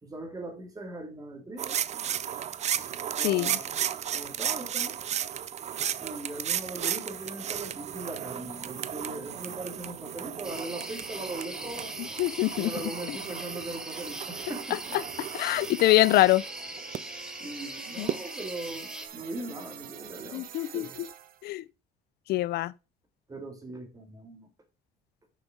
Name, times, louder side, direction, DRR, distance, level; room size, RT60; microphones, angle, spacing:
voice 1, 0.0-1.8 3.2-3.8 4.1-5.0 6.0-12.0 12.6-14.9 15.6-15.7 17.4-20.9 23.3-24.5, right 2 dB, 20° right, 2.2 m, -40 dB
sound 1, 1.6-17.0 18.1-18.2, right 9 dB, 40° right, 0.5 m, -34 dB
voice 2, 3.2-3.6 12.2-12.7 13.1-13.2 14.7-15.0 15.3-16.4 18.0-18.2 20.3-21.1 21.4-21.6 22.3-22.7, left 16 dB, 70° left, 0.5 m, -24 dB
sound 2, 7.5-21.5, right 9 dB, 60° right, 1.0 m, -48 dB
sound 3, 10.4-19.1, equal, 5° right, 1.2 m, -41 dB
6.6 x 5.4 x 4.8 m
cardioid pair, 110°, 17 cm